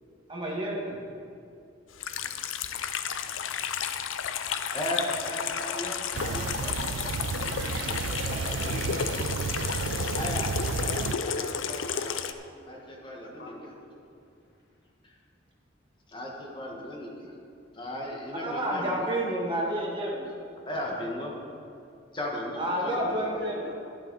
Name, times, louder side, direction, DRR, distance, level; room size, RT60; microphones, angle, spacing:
voice 1, 0.3-1.0 18.3-20.2 22.6-23.7, right 1 dB, 25° right, -3 dB, 1.9 m, -30 dB
Water tap faucet / Sink (filling or washing), 2.0-12.3, left 7 dB, 85° left, 0.5 m, -32 dB
voice 2, 4.7-7.9 8.2-9.3 10.1-10.5 10.8-12.3 12.7-13.7 15.0-15.2 16.1-17.3 17.7-19.1 20.6-21.3 22.1-23.4, left 1 dB, 25° left, -2 dB, 1.6 m, -37 dB
sound 1, 6.1-11.2, right 5 dB, 70° right, 0.3 m, -32 dB
voice 3, 8.6-9.3 9.5-10.1 11.2-12.3 13.2-14.0 22.9-23.8, left 1 dB, 60° left, 0 dB, 1.5 m, -45 dB
11.5 x 10.5 x 4.1 m, 2.5 s
head